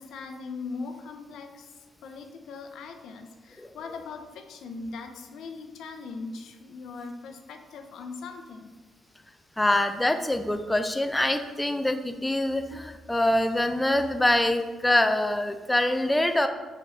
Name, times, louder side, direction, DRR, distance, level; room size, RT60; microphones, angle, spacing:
voice 1, 0.0-1.7 2.0-8.7, left 4 dB, 80° left, 6 dB, 0.7 m, -40 dB
voice 2, 9.6-16.5, left 1 dB, 10° left, 7 dB, 0.5 m, -24 dB
6.6 x 5.1 x 3.2 m, 1.3 s
cardioid pair, 90°, 0 cm